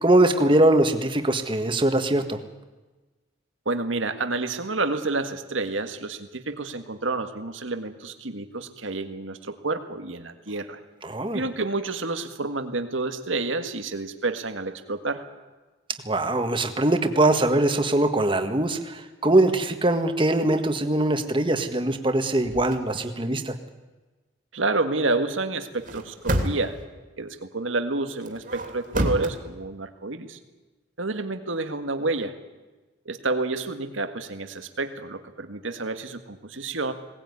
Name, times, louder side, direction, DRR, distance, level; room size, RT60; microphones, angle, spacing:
voice 1, 0.0-2.4 11.0-11.4 16.1-23.5, right 1 dB, 25° right, 7 dB, 1.6 m, -22 dB
voice 2, 3.7-10.8 11.3-15.3 24.5-26.8 27.2-30.4 31.0-32.4 33.1-36.9, right 3 dB, 85° right, 8 dB, 1.8 m, -29 dB
sound 1, 22.4-22.8 25.7-26.8 28.2-29.3, right 1 dB, 45° right, 2.9 m, -28 dB
21.0 x 19.0 x 9.7 m, 1.2 s
head